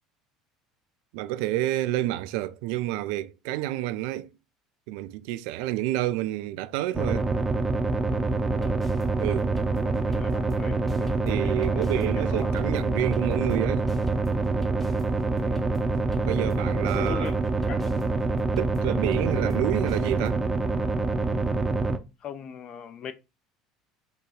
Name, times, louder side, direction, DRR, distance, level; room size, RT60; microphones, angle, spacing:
voice 1, 1.1-4.3 4.9-7.3 9.2-9.5 11.2-13.9 16.2-17.3 18.6-20.4, right 15 dB, 60° right, 0.4 m, -29 dB
sound 1, 6.9-22.0, right 3 dB, 15° right, 0.7 m, -26 dB
sound 2, 8.6-10.6 10.9-16.6 16.9-20.3, right 1 dB, 10° left, 0.9 m, -43 dB
voice 2, 9.7-12.6 15.3-15.6 16.9-17.3 17.7-17.8 22.2-23.1, left 7 dB, 45° left, 0.6 m, -40 dB
5.1 x 2.3 x 4.4 m
figure-of-eight pair, 65°, 2 cm